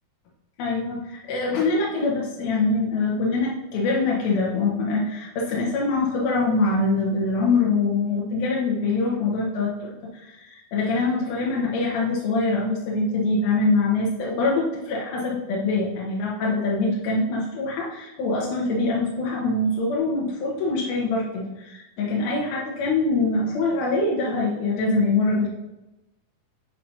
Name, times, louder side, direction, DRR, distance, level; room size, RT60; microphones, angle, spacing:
voice 1, 0.6-25.5, left 3 dB, 85° left, -3 dB, 3.0 m, -24 dB
7.0 x 4.4 x 5.5 m, 0.95 s
omnidirectional pair, 4.2 m